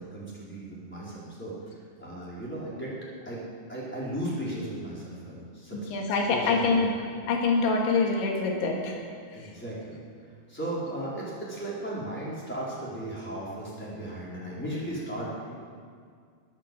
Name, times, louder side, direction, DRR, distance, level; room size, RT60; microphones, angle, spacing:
voice 1, 0.0-1.5 2.0-3.0 3.2-3.4 3.7-6.9 9.3-10.0 10.5-15.5, right 1 dB, 5° left, -7 dB, 3.7 m, -36 dB
voice 2, 5.7-6.9 7.3-9.0, left 4 dB, 75° left, 0 dB, 4.4 m, -25 dB
20.5 x 8.3 x 7.7 m, 2.1 s
omnidirectional pair, 5.3 m